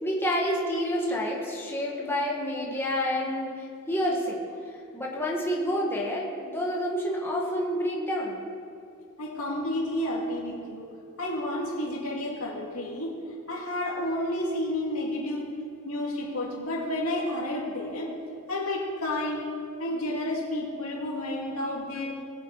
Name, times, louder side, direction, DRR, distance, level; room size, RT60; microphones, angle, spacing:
voice 1, 0.0-4.5 4.9-8.5 21.7-21.8, equal, 10° left, -3 dB, 1.7 m, -29 dB
voice 2, 9.2-10.9 11.2-13.1 13.5-15.5 15.8-18.1 18.5-19.5 19.8-22.2, left 1 dB, 90° left, -3 dB, 2.5 m, -31 dB
19.5 x 7.6 x 4.1 m, 2.5 s
head